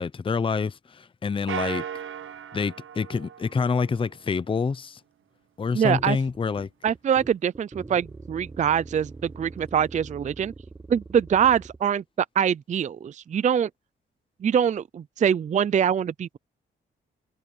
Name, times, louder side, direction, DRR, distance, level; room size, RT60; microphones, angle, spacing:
voice 1, 0.0-1.9 2.5-5.0 5.6-6.7, left 5 dB, 25° left, 0.6 m, -27 dB
sound 1, 1.5-4.2, right 9 dB, 75° right, 1.0 m, -36 dB
voice 2, 5.7-6.2 6.8-10.5 10.9-13.7 14.4-16.4, right 8 dB, 35° right, 0.4 m, -24 dB
sound 2, 5.9-11.8, right 3 dB, 15° right, 0.8 m, -43 dB
cardioid pair, 105°, 21 cm